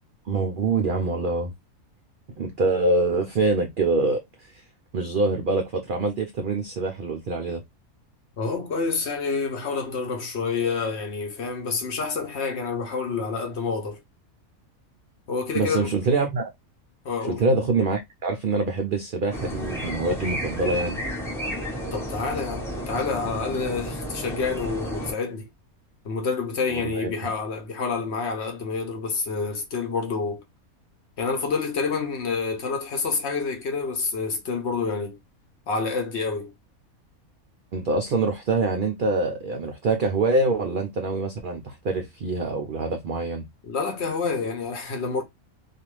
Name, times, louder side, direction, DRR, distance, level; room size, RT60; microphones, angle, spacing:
voice 1, 0.3-1.5 2.4-4.6 4.9-7.6 15.5-16.4 17.2-21.0 26.7-27.3 37.7-43.5, right 3 dB, 65° right, 0.5 m, -25 dB
voice 2, 8.4-14.0 15.3-15.9 17.0-17.4 21.9-25.5 26.0-30.4 31.2-35.2 35.7-36.5 43.6-45.2, left 4 dB, 60° left, 0.9 m, -28 dB
sound 1, 19.3-25.1, equal, ahead, 0.7 m, -32 dB
2.6 x 2.4 x 3.0 m
omnidirectional pair, 1.5 m